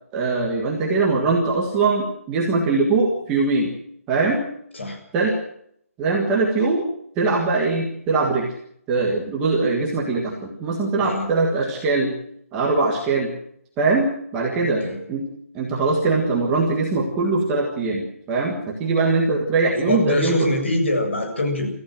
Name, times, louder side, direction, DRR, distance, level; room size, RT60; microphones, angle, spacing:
voice 1, 0.1-3.7 4.1-4.4 5.1-5.4 6.0-6.8 7.2-8.5 8.9-12.2 12.5-13.3 13.8-14.8 15.1-15.3 15.5-20.5, right 3 dB, 10° right, -2 dB, 1.6 m, -21 dB
voice 2, 14.6-15.0 19.7-21.7, left 2 dB, 50° left, 4 dB, 7.4 m, -24 dB
25.5 x 15.0 x 7.6 m, 0.70 s
hypercardioid pair, 180°, 8 cm